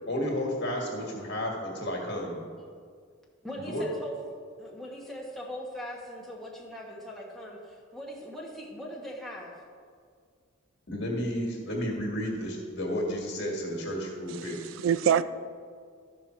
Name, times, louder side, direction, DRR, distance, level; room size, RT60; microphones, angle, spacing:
voice 1, 0.1-2.4 3.6-3.8 10.9-14.6, equal, 55° left, 1.9 m, -32 dB
voice 2, 3.4-4.1 4.6-9.5 15.0-15.2, equal, ahead, 1.2 m, -40 dB
voice 3, 14.4-15.2, right 9 dB, 70° right, 0.3 m, -25 dB
13.0 x 5.5 x 4.4 m
head